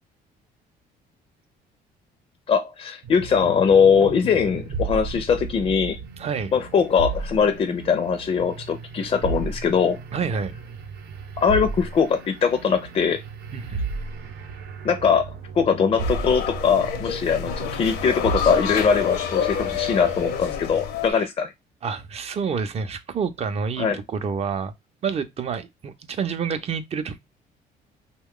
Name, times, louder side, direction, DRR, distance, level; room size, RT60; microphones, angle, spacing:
voice 1, 2.5-6.0 6.5-10.0 11.4-13.2 14.8-15.2 15.5-21.5 23.8-24.0, left 6 dB, 35° left, 0.4 m, -21 dB
sound 1, 3.0-20.4, right 4 dB, 75° right, 0.7 m, -34 dB
voice 2, 6.2-6.5 10.1-10.5 13.5-13.9 21.1-21.3 21.8-24.7 25.0-27.2, right 6 dB, 40° right, 0.5 m, -28 dB
sound 2, 16.0-21.1, left 8 dB, 75° left, 0.7 m, -28 dB
3.0 x 2.2 x 3.6 m
cardioid pair, 110°, 17 cm